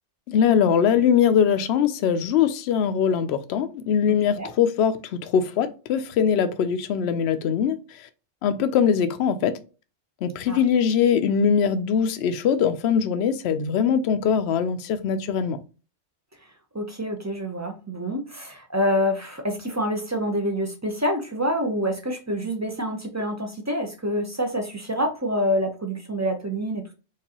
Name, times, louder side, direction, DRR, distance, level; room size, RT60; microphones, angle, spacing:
voice 1, 0.3-7.8 8.4-9.6 10.2-15.6, left 7 dB, 65° left, 0.8 m, -22 dB
voice 2, 16.7-26.9, equal, 20° right, 0.5 m, -27 dB
4.8 x 2.5 x 2.8 m
omnidirectional pair, 1.2 m